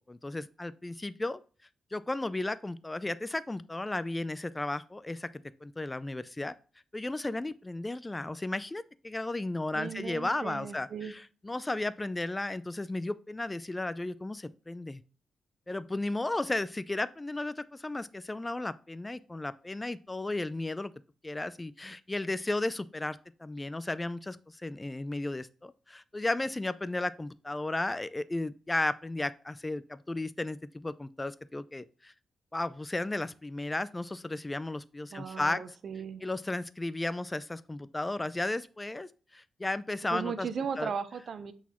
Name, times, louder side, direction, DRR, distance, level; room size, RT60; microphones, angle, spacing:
voice 1, 0.1-1.4 1.9-5.3 5.6-6.5 6.9-15.0 15.7-20.9 21.2-32.1 32.5-35.6 36.2-40.5 40.8-40.9, left 2 dB, 20° left, 0.3 m, -34 dB
voice 2, 9.7-11.1 35.1-36.2 40.0-41.5, right 6 dB, 65° right, 0.7 m, -37 dB
8.2 x 4.1 x 2.9 m
cardioid pair, 90°, 0 cm